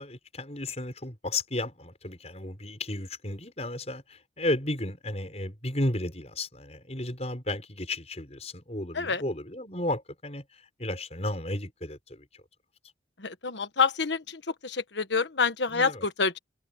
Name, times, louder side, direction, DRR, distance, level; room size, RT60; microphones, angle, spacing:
voice 1, 0.0-12.4 15.7-16.0, left 1 dB, 35° left, 6.6 m, -33 dB
voice 2, 13.2-16.4, left 5 dB, 75° left, 1.4 m, -27 dB
head